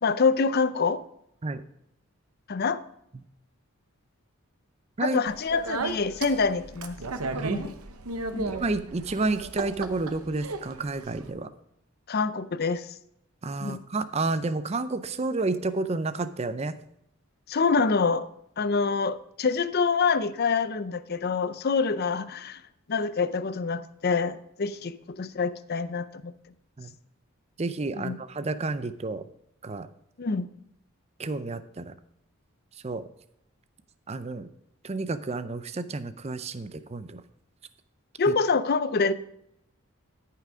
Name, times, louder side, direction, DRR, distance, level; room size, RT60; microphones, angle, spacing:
voice 1, 0.0-1.0 2.5-2.8 5.0-7.0 7.5-7.7 8.3-8.5 12.1-12.9 13.6-13.8 17.5-18.3 18.6-22.6 22.9-26.3 28.0-28.2 30.2-30.5 38.2-39.1, left 4 dB, 45° left, 0.5 m, -26 dB
Speech, 5.3-11.3, right 3 dB, 80° right, 1.0 m, -35 dB
voice 2, 7.3-7.7 8.5-11.5 13.4-16.8 26.8-26.9 27.6-29.2 29.6-29.9 31.2-31.9 32.8-33.1 34.1-34.5 34.8-37.2 38.3-38.4, right 3 dB, 30° right, 0.5 m, -30 dB
13.0 x 5.7 x 5.0 m
head